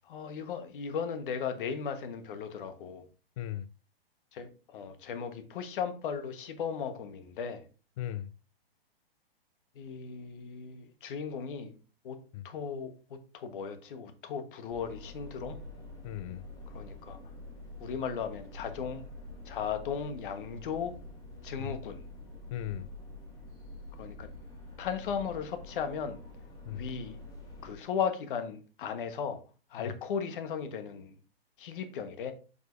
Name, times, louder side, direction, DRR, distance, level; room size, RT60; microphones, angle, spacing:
voice 1, 0.1-3.1 4.3-7.6 9.7-11.7 12.0-12.2 12.4-15.6 16.7-17.2 17.8-19.0 19.4-20.9 21.4-22.0 24.0-24.3 24.8-26.2 26.7-27.2 27.6-29.4 29.7-31.1 31.6-32.3, left 7 dB, 60° left, 1.3 m, -36 dB
voice 2, 3.4-3.7 8.0-8.3 12.3-12.5 16.0-16.4 21.6-21.8 22.5-22.9 26.7-26.8 29.8-29.9, left 12 dB, 35° left, 0.4 m, -37 dB
sound 1, 14.7-27.7, left 2 dB, 15° left, 1.9 m, -47 dB
7.5 x 5.5 x 2.6 m
hypercardioid pair, 125°, 30 cm